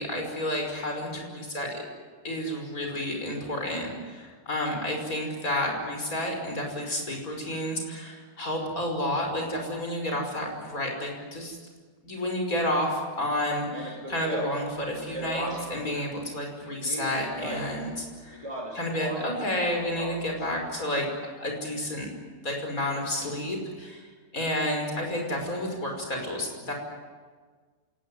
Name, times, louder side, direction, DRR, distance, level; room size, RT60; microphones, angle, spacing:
voice 1, 0.0-1.8 2.2-11.6 12.0-18.5 18.7-21.1 21.4-22.1 22.4-24.0 24.3-26.7, left 1 dB, 50° left, 2 dB, 6.0 m, -30 dB
Speech, 13.7-15.9 16.7-17.9 18.3-19.4 19.8-20.4, right 1 dB, 15° right, 4.9 m, -36 dB
27.5 x 18.5 x 9.9 m, 1.5 s
omnidirectional pair, 1.9 m